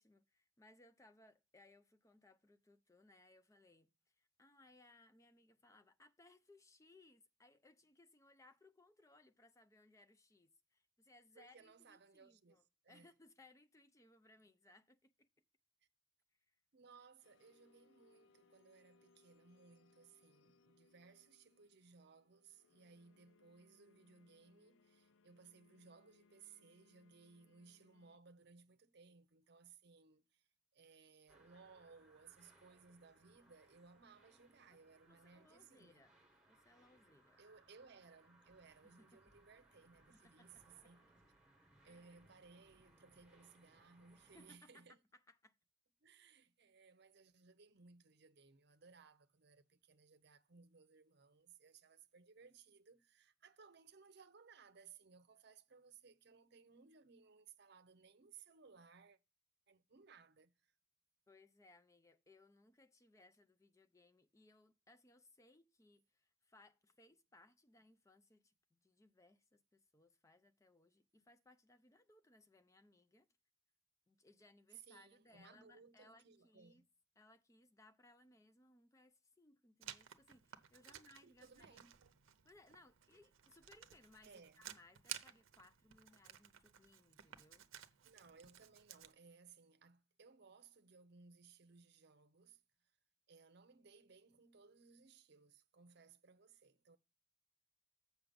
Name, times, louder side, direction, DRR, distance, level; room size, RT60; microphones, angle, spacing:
voice 1, 0.0-15.3 16.3-16.6 35.1-36.2 36.5-37.4 38.8-39.2 40.1-40.9 41.9-42.1 44.3-44.9 45.1-45.5 61.3-73.3 74.1-76.9 77.2-81.8 82.4-87.7, left 2 dB, 15° left, 0.5 m, -67 dB
voice 2, 11.3-13.1 16.7-30.4 30.7-36.0 37.4-41.1 41.6-45.0 46.0-59.2 59.7-60.7 74.7-76.9 80.9-81.9 84.2-84.6 88.0-92.6 93.3-97.0, right 5 dB, 55° right, 0.7 m, -63 dB
sound 1, 17.2-28.2, left 3 dB, 70° left, 0.5 m, -73 dB
sound 2, 31.3-44.6, right 2 dB, 5° right, 1.3 m, -70 dB
Writing, 79.8-89.1, right 11 dB, 90° right, 0.7 m, -55 dB
7.4 x 5.8 x 5.2 m
head